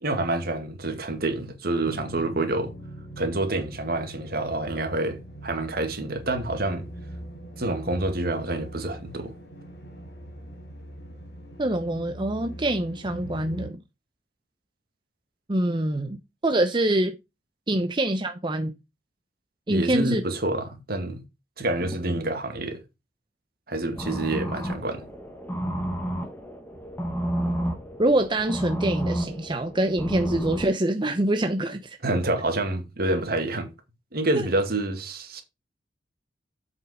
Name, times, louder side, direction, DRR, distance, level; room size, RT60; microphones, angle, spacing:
voice 1, 0.0-2.7 3.2-6.9 7.6-9.3 19.7-21.2 21.6-22.8 23.7-25.0 32.0-33.7 34.1-35.4, right 2 dB, 60° right, 2.0 m, -27 dB
sound 1, 1.8-13.7, right 1 dB, 90° left, 3.2 m, -41 dB
voice 2, 11.6-13.8 15.5-16.2 16.4-17.2 17.7-18.7 19.7-20.2 28.0-32.0 34.4-34.5, right 1 dB, 25° right, 0.7 m, -25 dB
sound 2, 23.9-30.7, right 1 dB, 10° left, 1.7 m, -31 dB
8.0 x 5.5 x 4.9 m
head